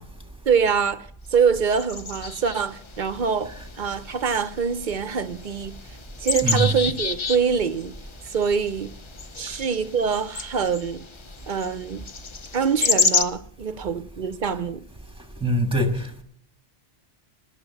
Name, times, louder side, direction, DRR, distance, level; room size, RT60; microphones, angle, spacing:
voice 1, 0.5-5.8 6.2-7.9 8.3-8.9 9.4-11.0 11.5-12.0 12.5-14.8, right 6 dB, 55° right, 0.7 m, -24 dB
sound 1, 1.7-13.2, left 5 dB, 35° left, 0.5 m, -30 dB
voice 2, 15.4-16.2, equal, 5° right, 1.7 m, -23 dB
19.5 x 7.1 x 6.9 m
omnidirectional pair, 1.1 m